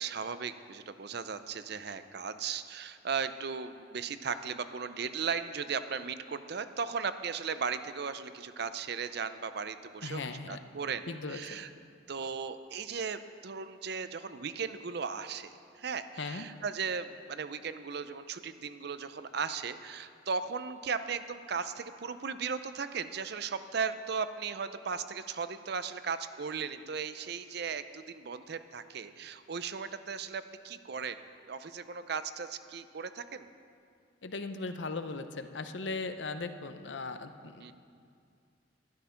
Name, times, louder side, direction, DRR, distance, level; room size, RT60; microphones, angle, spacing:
voice 1, 0.0-11.7 12.1-31.2 31.5-33.5 37.6-37.7, right 5 dB, 60° right, 12 dB, 0.6 m, -37 dB
voice 2, 10.0-10.6 11.1-11.6 16.2-16.4 34.2-37.7, left 3 dB, 75° left, 9 dB, 0.7 m, -38 dB
12.0 x 11.5 x 5.8 m, 2.3 s
head